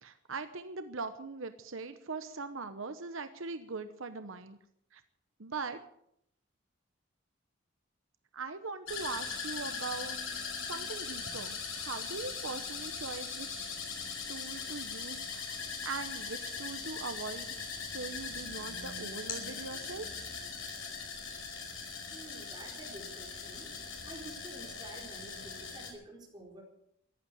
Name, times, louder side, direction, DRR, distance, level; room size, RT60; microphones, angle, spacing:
voice 1, 0.0-4.6 4.9-5.0 5.4-5.8 8.3-13.7 14.3-17.5 17.8-20.1, right 4 dB, 75° right, 9 dB, 1.0 m, -41 dB
sound 1, 8.9-25.9, left 5 dB, 80° left, 5.4 m, -40 dB
voice 2, 22.1-23.7 24.0-26.6, right 2 dB, 20° right, -2 dB, 4.6 m, -49 dB
15.0 x 11.0 x 8.1 m, 0.73 s
head